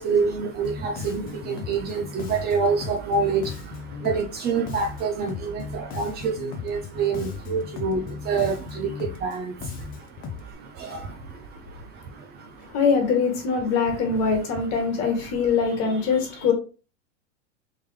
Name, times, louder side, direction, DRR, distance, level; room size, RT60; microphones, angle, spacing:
voice 1, 0.0-12.8, right 5 dB, 30° right, 0.5 m, -28 dB
Bass guitar, 0.6-10.5, left 5 dB, 25° left, 0.5 m, -37 dB
voice 2, 12.7-16.5, left 5 dB, 45° left, 1.6 m, -23 dB
3.6 x 3.0 x 3.2 m
supercardioid pair, 130°, 36 cm